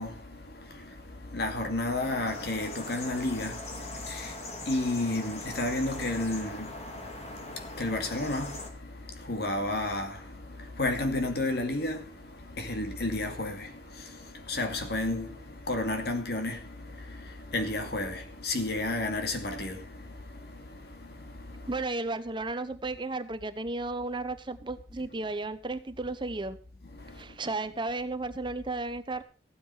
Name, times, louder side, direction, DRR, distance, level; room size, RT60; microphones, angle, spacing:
voice 1, 0.0-21.7 26.9-27.4, left 2 dB, 60° left, 2.4 m, -33 dB
sound 1, 2.0-8.7, left 2 dB, 35° left, 2.4 m, -41 dB
voice 2, 21.7-26.6 27.2-29.2, right 2 dB, 25° right, 0.9 m, -34 dB
15.5 x 9.3 x 5.7 m
head